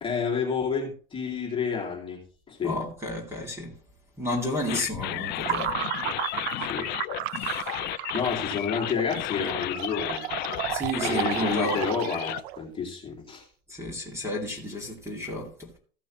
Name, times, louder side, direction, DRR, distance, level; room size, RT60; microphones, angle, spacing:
voice 1, 0.0-2.2 2.5-2.8 6.6-6.9 7.7-7.9 8.1-10.3 11.0-13.5, left 6 dB, 15° left, 2.5 m, -30 dB
voice 2, 2.6-3.7 4.2-5.8 7.3-7.7 10.7-11.8 13.7-15.8, left 1 dB, 10° right, 2.4 m, -32 dB
sound 1, 4.7-12.4, left 16 dB, 35° left, 0.4 m, -33 dB
sound 2, 5.4-12.6, right 13 dB, 85° right, 0.6 m, -33 dB
15.0 x 6.1 x 3.1 m
supercardioid pair, 145°, 31 cm